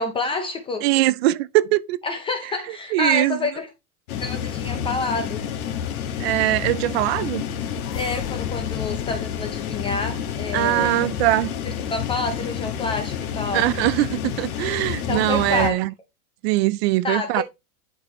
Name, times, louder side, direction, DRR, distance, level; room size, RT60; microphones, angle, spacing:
voice 1, 0.0-0.8 2.0-3.7 4.2-5.4 7.9-11.1 11.6-13.7 15.1-15.8 17.0-17.4, left 3 dB, 10° left, 0.4 m, -28 dB
voice 2, 0.8-2.0 2.9-3.4 6.2-7.4 10.5-11.5 13.5-15.9 16.4-17.4, right 17 dB, 45° right, 0.5 m, -21 dB
sound 1, 4.1-15.7, left 8 dB, 65° left, 1.8 m, -29 dB
sound 2, 7.0-11.0, left 11 dB, 90° left, 0.8 m, -39 dB
11.0 x 4.5 x 3.1 m
supercardioid pair, 140°, 45 cm